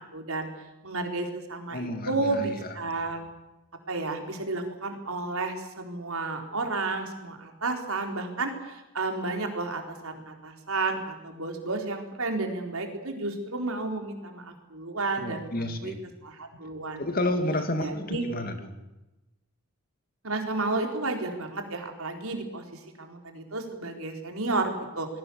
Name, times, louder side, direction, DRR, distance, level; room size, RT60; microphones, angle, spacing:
voice 1, 0.1-0.5 0.8-3.2 3.9-15.5 15.8-15.9 16.2-17.1 17.8-18.3 20.2-22.6 23.0-25.1, right 3 dB, 70° right, 3 dB, 4.2 m, -32 dB
voice 2, 1.7-2.7 15.2-16.0 17.0-18.8, left 1 dB, 40° left, 6 dB, 2.6 m, -31 dB
28.0 x 21.0 x 7.2 m, 0.99 s
head